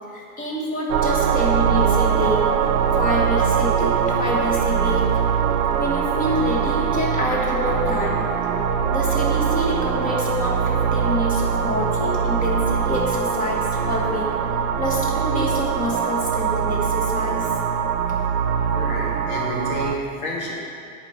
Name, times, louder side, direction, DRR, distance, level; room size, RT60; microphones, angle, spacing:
voice 1, 0.1-2.5 2.9-5.2 5.7-8.2 8.9-17.5, left 1 dB, 20° left, -3 dB, 1.3 m, -27 dB
sound 1, 0.9-20.0, right 7 dB, 85° right, 0.7 m, -22 dB
voice 2, 18.7-20.5, equal, 80° left, -3 dB, 2.0 m, -30 dB
10.0 x 4.5 x 4.3 m, 2.4 s
supercardioid pair, 150°, 42 cm